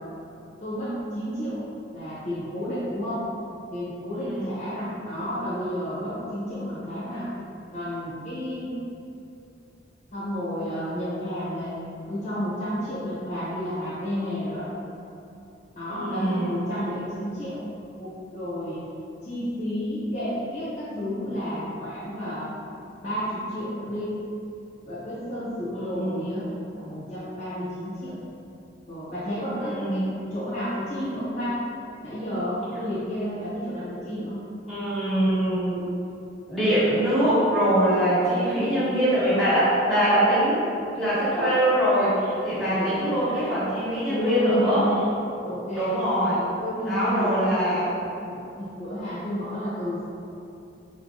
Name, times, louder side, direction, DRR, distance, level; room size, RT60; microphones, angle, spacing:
voice 1, 0.6-1.6 1.9-3.3 3.7-7.3 7.7-8.8 10.1-11.8 12.1-14.7 15.7-17.6 18.0-18.8 19.2-22.5 23.0-24.1 24.8-26.5 26.7-28.2 28.9-30.1 30.3-31.6 32.0-34.4 38.3-38.9 42.6-43.1 44.1-44.9 45.4-45.9 46.6-47.8 48.2-50.0, equal, 40° left, -10 dB, 0.9 m, -31 dB
voice 2, 15.9-16.5 25.7-26.3 29.6-30.0 34.7-35.8 36.5-40.6 40.9-44.8 45.7-46.4 46.8-47.9, right 1 dB, ahead, -14 dB, 1.5 m, -23 dB
3.8 x 3.3 x 2.5 m, 2.7 s
head